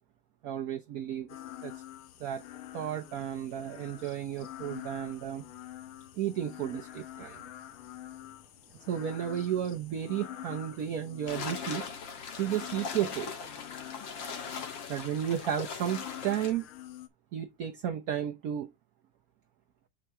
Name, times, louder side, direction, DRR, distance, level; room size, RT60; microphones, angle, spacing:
voice 1, 0.4-1.3 1.6-1.7 2.2-2.4 2.7-5.5 6.2-7.4 8.9-11.9 12.4-13.3 14.9-16.7 17.3-18.7, right 10 dB, 60° right, 1.0 m, -33 dB
sound 1, 1.3-17.1, left 13 dB, 80° left, 1.7 m, -47 dB
sound 2, 11.3-16.5, left 5 dB, 60° left, 2.1 m, -40 dB
6.4 x 6.3 x 3.3 m
omnidirectional pair, 2.4 m